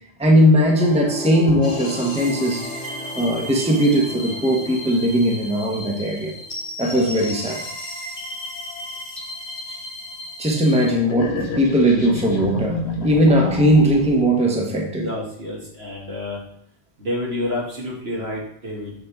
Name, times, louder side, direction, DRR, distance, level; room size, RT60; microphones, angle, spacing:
voice 1, 0.2-6.3 6.8-7.6 9.7-9.8 10.4-15.1, equal, 5° right, 1 dB, 0.9 m, -19 dB
sound 1, 0.8-6.6, left 1 dB, 10° left, 0.6 m, -35 dB
sound 2, 1.6-10.9, left 1 dB, 30° left, 1.4 m, -35 dB
sound 3, 11.1-14.2, left 2 dB, 90° left, 1.4 m, -29 dB
voice 2, 15.0-16.4 17.0-18.9, left 1 dB, 70° right, -4 dB, 2.4 m, -29 dB
6.7 x 6.3 x 3.5 m, 0.69 s
omnidirectional pair, 1.1 m